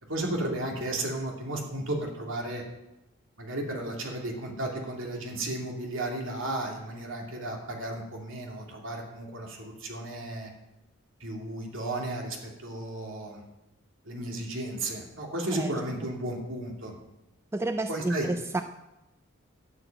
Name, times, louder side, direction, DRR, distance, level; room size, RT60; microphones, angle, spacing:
voice 1, 0.1-2.6 3.4-10.5 11.2-13.4 14.0-17.0 17.9-18.3, right 1 dB, 65° right, 0 dB, 2.8 m, -34 dB
voice 2, 17.5-18.6, right 2 dB, 10° right, 9 dB, 0.3 m, -30 dB
12.5 x 6.5 x 9.1 m, 0.93 s
head